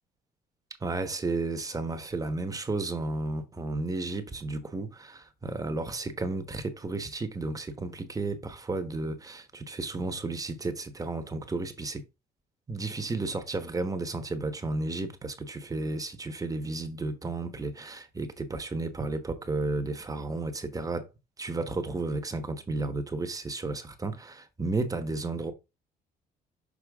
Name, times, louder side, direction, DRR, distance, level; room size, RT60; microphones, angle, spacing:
voice 1, 0.8-12.0 12.7-21.1 21.4-25.5, right 3 dB, 20° right, 1.2 m, -33 dB
6.4 x 4.6 x 3.5 m
cardioid pair, 110°, 17 cm